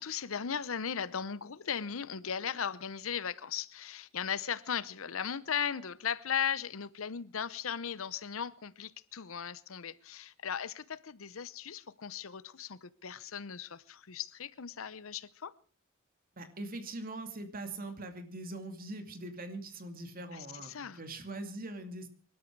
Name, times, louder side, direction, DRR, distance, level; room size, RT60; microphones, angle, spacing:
voice 1, 0.0-15.5 20.3-21.0, left 7 dB, 80° left, 0.8 m, -37 dB
voice 2, 16.4-22.1, right 2 dB, 45° right, 2.4 m, -42 dB
24.0 x 12.5 x 4.7 m
head